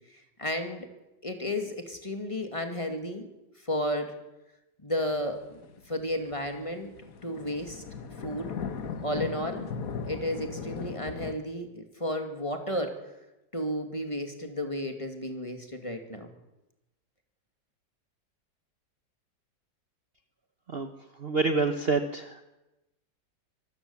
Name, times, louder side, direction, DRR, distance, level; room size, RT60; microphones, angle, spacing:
voice 1, 0.1-0.9 1.2-3.3 3.6-4.1 4.8-5.6 5.9-6.9 7.2-7.8 8.2-8.5 9.0-9.7 10.0-13.0 13.5-16.3, equal, 20° left, 5 dB, 2.3 m, -33 dB
sound 1, 5.1-11.3, left 6 dB, 55° left, 1.6 m, -38 dB
voice 2, 21.2-22.4, right 4 dB, 40° right, 8 dB, 1.1 m, -27 dB
24.5 x 15.0 x 7.1 m, 0.98 s
omnidirectional pair, 1.9 m